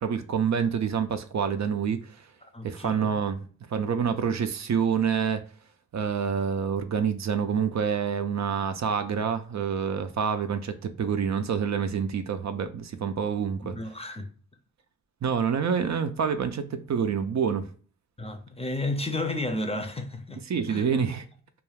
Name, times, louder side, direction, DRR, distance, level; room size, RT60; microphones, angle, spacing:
voice 1, 0.0-2.3 2.6-5.4 5.9-13.8 15.2-17.7 20.5-21.2, right 7 dB, 60° right, 0.4 m, -27 dB
voice 2, 2.4-3.1 13.6-14.3 18.2-20.9, left 2 dB, 20° left, 0.5 m, -32 dB
2.3 x 2.3 x 3.2 m
cardioid pair, 50°, 32 cm